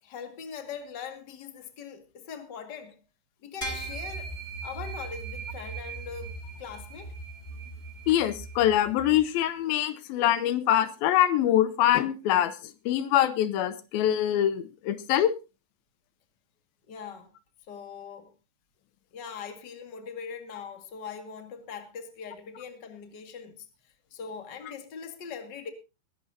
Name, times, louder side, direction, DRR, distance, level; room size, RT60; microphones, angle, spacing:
voice 1, 0.0-3.0 3.4-4.3 4.6-7.1 16.9-17.3 17.7-18.3 19.1-23.7 24.1-25.7, left 6 dB, 35° left, 2.1 m, -41 dB
sound 1, 3.6-9.2, right 3 dB, 15° left, 3.8 m, -39 dB
voice 2, 8.1-12.6 12.9-15.3, left 11 dB, 85° left, 2.7 m, -24 dB
21.5 x 11.5 x 2.8 m
omnidirectional pair, 4.2 m